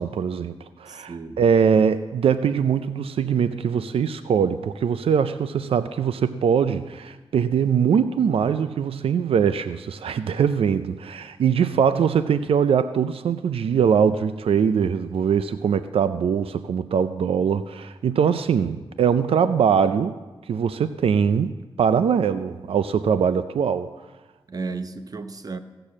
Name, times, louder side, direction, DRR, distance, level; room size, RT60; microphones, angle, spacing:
voice 1, 0.0-20.1 20.5-21.5 21.8-23.9, right 7 dB, 90° right, 0.4 m, -22 dB
voice 2, 0.9-1.4 24.5-25.6, right 4 dB, 40° right, 0.9 m, -33 dB
17.0 x 6.9 x 7.3 m
cardioid pair, 70°, 9 cm